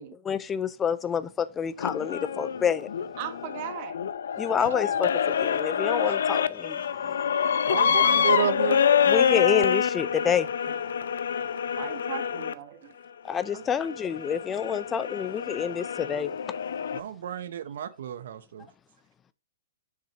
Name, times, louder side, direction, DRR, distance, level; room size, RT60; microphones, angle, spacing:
voice 1, 0.3-2.9 4.4-6.8 9.1-10.5 13.3-16.3, left 7 dB, 20° left, 0.4 m, -28 dB
sound 1, 1.8-12.5 13.3-17.0, left 7 dB, 75° left, 0.5 m, -26 dB
voice 2, 3.2-4.0 10.4-10.8 11.7-12.9 13.5-13.6, right 10 dB, 45° right, 1.4 m, -39 dB
voice 3, 7.6-8.8 16.9-18.7, right 9 dB, 65° right, 0.7 m, -31 dB
7.3 x 6.0 x 2.8 m
hypercardioid pair, 130°, 0 cm